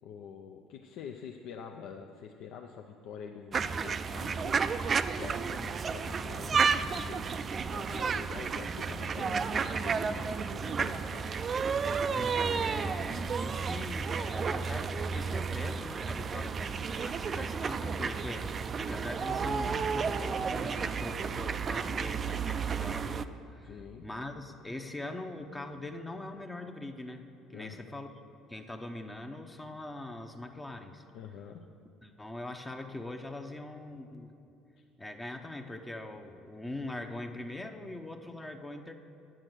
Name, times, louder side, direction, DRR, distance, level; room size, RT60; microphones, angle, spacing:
voice 1, 0.0-4.6 5.1-11.3 23.6-24.0 27.5-27.9 31.1-31.6, left 7 dB, 60° left, 3 dB, 0.4 m, -46 dB
sound 1, 3.5-23.3, right 5 dB, 40° right, 0.3 m, -32 dB
voice 2, 12.1-27.2 27.5-28.1 28.5-31.0 32.0-34.3 35.0-38.9, left 2 dB, 15° left, 5 dB, 0.7 m, -42 dB
8.9 x 6.3 x 6.1 m, 2.6 s
hypercardioid pair, 60°, 0 cm